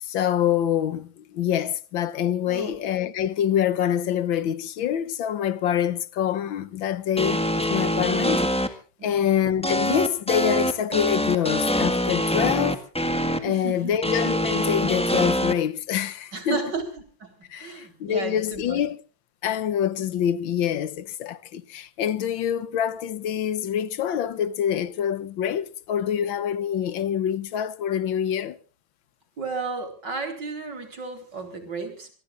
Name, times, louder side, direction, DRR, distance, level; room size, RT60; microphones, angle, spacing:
voice 1, 0.0-8.5 9.0-12.8 13.4-16.6 17.5-19.0 19.4-28.6, left 9 dB, 85° left, 1.7 m, -26 dB
voice 2, 2.5-2.8 9.0-9.3 13.5-14.0 16.3-16.9 17.2-18.8 29.4-32.1, right 4 dB, 65° right, 4.6 m, -33 dB
sound 1, 7.2-8.7 9.6-13.4 14.0-15.5, equal, 5° left, 1.5 m, -24 dB
26.0 x 21.0 x 2.5 m
omnidirectional pair, 2.1 m